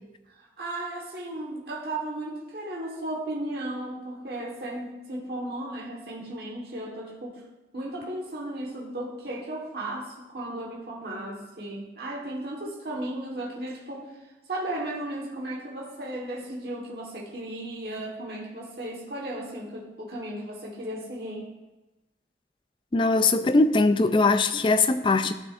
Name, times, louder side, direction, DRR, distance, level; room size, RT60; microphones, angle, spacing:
voice 1, 0.6-7.4 7.7-14.1 14.5-21.5, right 1 dB, 60° right, 1.4 m, -35 dB
voice 2, 22.9-25.3, left 3 dB, 25° left, 0.3 m, -21 dB
13.0 x 6.1 x 2.5 m
head